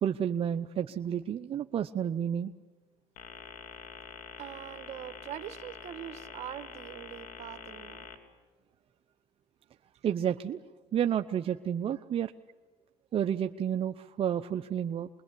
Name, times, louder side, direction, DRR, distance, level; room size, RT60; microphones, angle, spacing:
voice 1, 0.0-2.5 10.0-10.6 10.9-12.3 13.1-15.1, right 9 dB, 55° right, 7 dB, 0.7 m, -30 dB
sound 1, 3.2-8.1, left 5 dB, 90° left, 3.0 m, -46 dB
voice 2, 4.4-8.1, right 11 dB, 70° right, 10 dB, 1.5 m, -43 dB
26.0 x 21.5 x 8.4 m, 1.4 s
cardioid pair, 85°, 12 cm